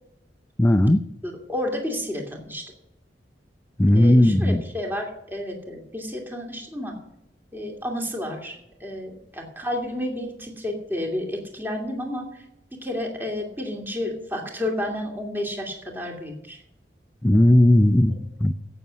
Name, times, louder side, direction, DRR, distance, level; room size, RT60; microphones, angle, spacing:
voice 1, 0.6-1.0 3.8-4.6 17.2-18.5, left 1 dB, 15° left, 0.5 m, -17 dB
voice 2, 1.2-2.7 3.9-7.0 7.5-12.5 12.8-16.6, left 1 dB, 15° right, 2.6 m, -31 dB
16.5 x 7.0 x 6.3 m
head